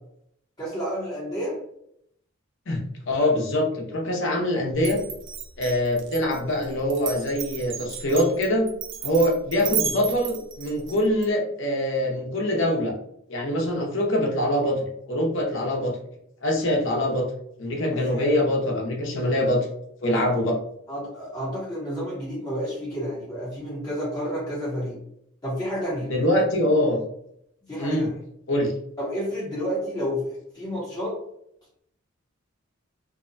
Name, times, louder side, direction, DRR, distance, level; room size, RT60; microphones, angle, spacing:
voice 1, 0.6-1.6 17.9-18.4 20.1-20.2 20.9-25.0 25.4-26.1 27.7-28.1 29.0-31.2, equal, 20° left, -8 dB, 0.7 m, -30 dB
voice 2, 3.1-5.0 5.6-8.7 9.0-12.9 13.3-14.8 15.1-16.0 16.4-17.3 17.6-19.6 20.0-20.6 26.1-27.0 27.8-28.1 28.5-28.7, left 1 dB, 65° left, 0 dB, 0.7 m, -24 dB
Glass, 4.8-11.3, right 8 dB, 60° right, 0.4 m, -33 dB
2.6 x 2.1 x 2.5 m, 0.72 s
head